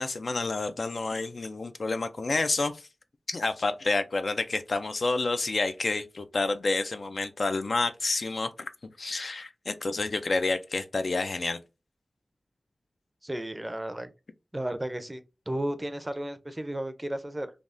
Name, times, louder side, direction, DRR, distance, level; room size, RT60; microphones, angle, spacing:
voice 1, 0.0-2.8 3.3-8.7 9.0-11.6, left 3 dB, 70° left, 0.3 m, -29 dB
voice 2, 13.2-14.1 14.5-15.2 15.5-17.5, right 1 dB, 20° right, 0.4 m, -33 dB
3.3 x 2.2 x 2.5 m
wide cardioid pair, 65°, 0 cm